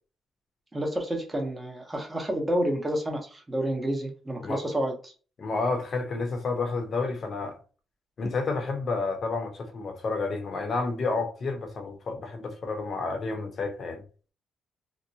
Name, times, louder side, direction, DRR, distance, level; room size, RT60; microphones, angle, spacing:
voice 1, 0.7-5.1, right 1 dB, 15° right, 0.9 m, -29 dB
voice 2, 5.4-7.6 8.2-14.0, left 3 dB, 50° left, 0.8 m, -30 dB
2.8 x 2.1 x 2.7 m
cardioid pair, 90°, 0 cm